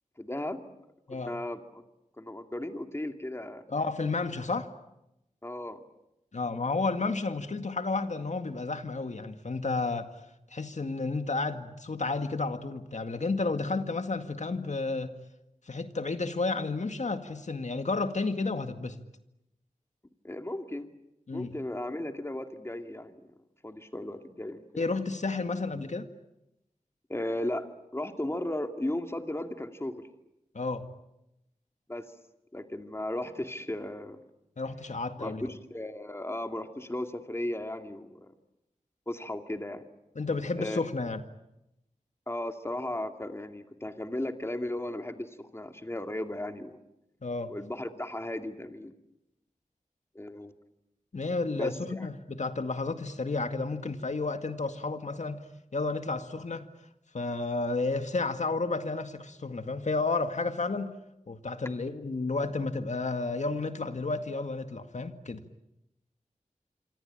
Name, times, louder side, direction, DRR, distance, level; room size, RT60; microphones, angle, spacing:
voice 1, 0.2-0.6 1.1-1.8 2.2-3.6 5.4-5.8 20.2-20.9 21.3-23.2 23.6-24.9 27.1-27.7 27.9-30.1 31.9-32.1 32.5-34.2 35.2-38.3 39.1-39.8 40.5-40.8 42.3-46.8 47.5-49.0 50.1-50.5 51.5-52.1, left 1 dB, 20° left, 6 dB, 2.4 m, -36 dB
voice 2, 3.7-4.7 6.3-10.1 10.5-15.1 15.7-19.0 21.3-21.5 24.8-26.1 30.5-30.9 34.6-35.4 40.2-41.2 47.2-47.5 51.1-55.5 55.7-56.7 57.1-61.0 61.3-65.6, left 3 dB, 60° left, 8 dB, 2.1 m, -31 dB
26.5 x 25.0 x 8.9 m, 0.88 s
wide cardioid pair, 65°, 14 cm